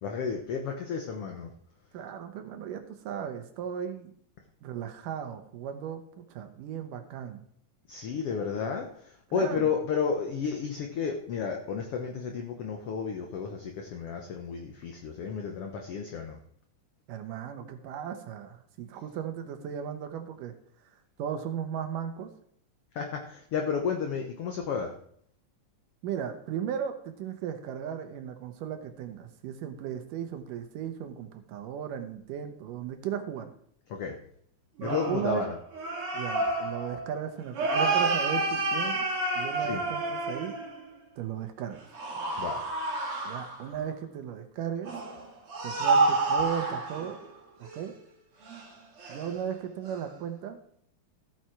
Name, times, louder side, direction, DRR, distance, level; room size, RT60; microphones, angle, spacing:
voice 1, 0.0-1.5 7.9-16.4 22.9-24.9 33.9-34.2 34.8-35.5 39.6-39.8 42.4-42.6, left 6 dB, 70° left, 3 dB, 1.4 m, -32 dB
voice 2, 1.9-4.1 4.6-7.4 9.3-9.7 17.1-20.5 20.9-22.3 26.0-33.5 34.8-35.4 36.1-39.1 39.4-40.6 41.2-41.8 43.2-44.9 45.6-47.2 47.6-48.0 49.1-50.6, right 8 dB, 75° right, 7 dB, 2.5 m, -36 dB
sound 1, 34.8-40.9 41.9-43.8 44.8-47.3 47.6-47.8 48.4-48.7 49.0-49.4 49.9-50.0, right 3 dB, 45° right, 2.6 m, -29 dB
14.0 x 7.5 x 4.6 m, 0.65 s
omnidirectional pair, 3.9 m